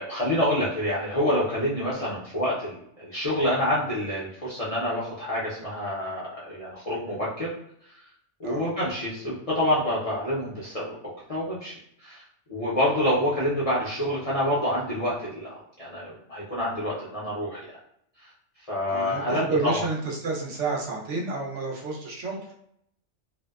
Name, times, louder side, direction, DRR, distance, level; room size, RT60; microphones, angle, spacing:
voice 1, 0.0-7.5 8.4-11.7 12.0-12.2 12.5-17.6 18.2-18.3 18.7-19.9, left 1 dB, 40° left, -8 dB, 0.5 m, -27 dB
voice 2, 18.9-22.5, right 3 dB, 75° right, -1 dB, 0.9 m, -30 dB
2.7 x 2.0 x 2.2 m, 0.72 s
omnidirectional pair, 1.2 m